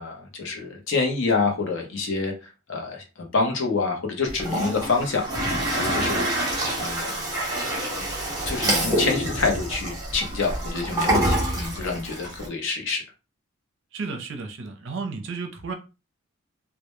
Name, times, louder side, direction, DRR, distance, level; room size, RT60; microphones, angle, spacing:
voice 1, 0.0-2.3 2.7-7.1 8.5-13.0, left 4 dB, 60° left, 0.7 m, -27 dB
Toilet flush, 4.3-12.5, right 1 dB, 15° right, 0.8 m, -26 dB
voice 2, 13.9-15.7, right 4 dB, 60° right, 0.5 m, -33 dB
2.1 x 2.1 x 3.0 m
head